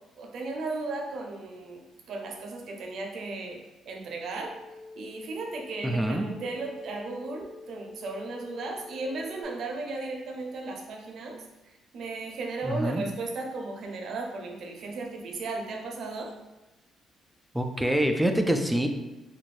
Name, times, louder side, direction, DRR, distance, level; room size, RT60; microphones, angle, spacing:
voice 1, 0.2-3.6 3.9-4.5 5.0-11.4 11.9-16.3, right 3 dB, 65° right, 1 dB, 0.6 m, -35 dB
sound 1, 4.4-9.4, left 3 dB, 60° left, 0.7 m, -46 dB
voice 2, 5.8-6.2 12.6-13.0 17.5-18.9, right 1 dB, 5° right, 5 dB, 0.3 m, -25 dB
2.6 x 2.5 x 3.1 m, 1.0 s
cardioid pair, 90°, 0 cm